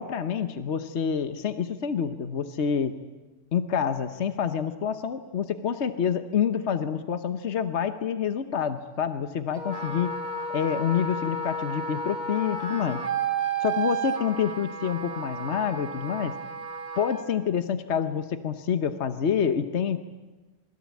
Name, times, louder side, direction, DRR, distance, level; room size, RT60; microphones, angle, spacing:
voice 1, 0.0-2.9 3.5-10.1 10.5-13.0 13.6-16.3 17.0-20.0, left 7 dB, 65° left, 10 dB, 1.3 m, -27 dB
Wind instrument woodwind instrument, 9.6-17.3, right 4 dB, 35° right, 2.2 m, -32 dB
27.0 x 21.5 x 8.4 m, 1.2 s
omnidirectional pair, 1.3 m